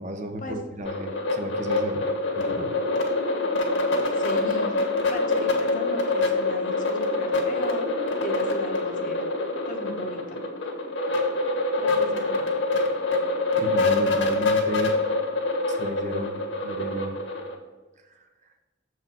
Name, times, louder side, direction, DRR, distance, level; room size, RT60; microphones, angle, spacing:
voice 1, 0.0-2.0 2.3-2.7 13.6-14.9 15.7-17.1 18.1-18.2, right 1 dB, 35° right, 5 dB, 0.9 m, -33 dB
sound 1, 0.8-17.5, left 2 dB, 70° left, 1.6 m, -25 dB
voice 2, 3.8-4.8 5.1-8.0 8.2-9.2 9.7-10.4 11.8-12.6, left 1 dB, 40° left, 4 dB, 1.1 m, -37 dB
7.7 x 4.8 x 5.6 m, 1.2 s
head